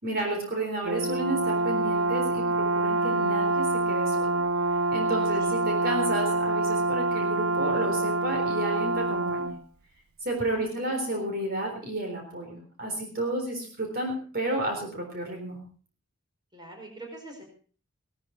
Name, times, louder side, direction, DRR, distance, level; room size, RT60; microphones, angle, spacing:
voice 1, 0.0-4.4 4.9-9.6 10.2-15.6, right 1 dB, 45° right, 2 dB, 4.0 m, -32 dB
Brass instrument, 0.8-9.6, right 2 dB, 85° right, 0.6 m, -26 dB
voice 2, 10.4-11.0 16.5-17.4, right 2 dB, 20° right, 2 dB, 4.6 m, -43 dB
18.0 x 12.5 x 4.5 m, 0.41 s
head